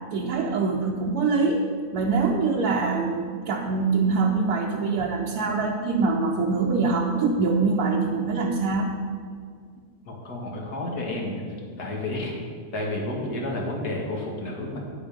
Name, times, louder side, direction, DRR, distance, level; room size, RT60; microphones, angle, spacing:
voice 1, 0.1-1.7 1.9-8.9, right 4 dB, 80° right, -1 dB, 1.3 m, -24 dB
voice 2, 10.1-11.4 11.8-12.3 12.7-14.8, left 1 dB, 80° left, -1 dB, 2.2 m, -30 dB
9.5 x 8.1 x 5.2 m, 2.1 s
omnidirectional pair, 1.6 m